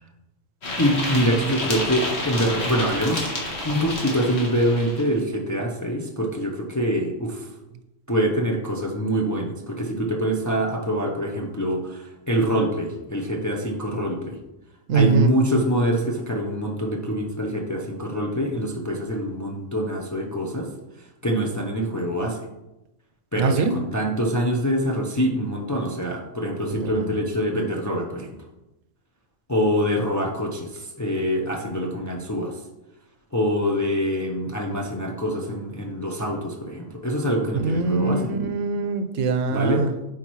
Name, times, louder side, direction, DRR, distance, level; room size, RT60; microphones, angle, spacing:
sound 1, 0.6-5.1, left 1 dB, 60° left, 1.6 m, -29 dB
voice 1, 0.8-3.3 3.6-7.5 8.1-14.4 14.9-20.7 21.2-22.4 23.3-28.3 29.5-32.5 33.3-38.2 39.5-39.8, equal, 25° left, 1 dB, 0.4 m, -25 dB
voice 2, 14.9-15.3 23.4-23.7 26.7-27.2 37.4-39.9, right 4 dB, 85° right, 9 dB, 1.0 m, -23 dB
8.4 x 4.5 x 3.1 m, 0.96 s
omnidirectional pair, 1.3 m